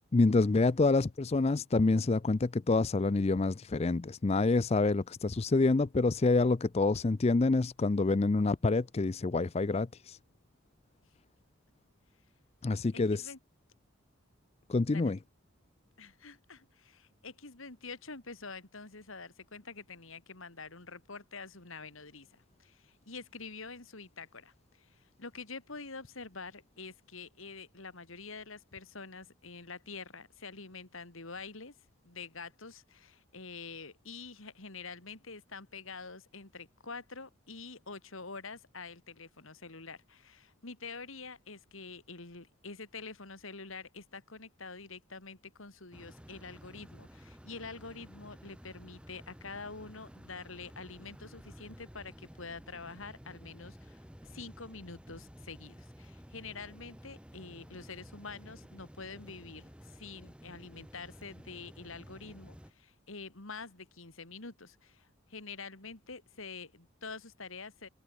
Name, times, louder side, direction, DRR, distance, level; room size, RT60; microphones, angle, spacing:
voice 1, 0.1-10.2 12.6-13.3 14.7-15.2, left 3 dB, 30° left, 0.4 m, -27 dB
voice 2, 12.9-13.4 14.9-15.1 16.0-31.7 32.0-67.9, left 4 dB, 70° left, 2.7 m, -46 dB
sound 1, 45.9-62.7, equal, 5° right, 1.7 m, -53 dB
open air
head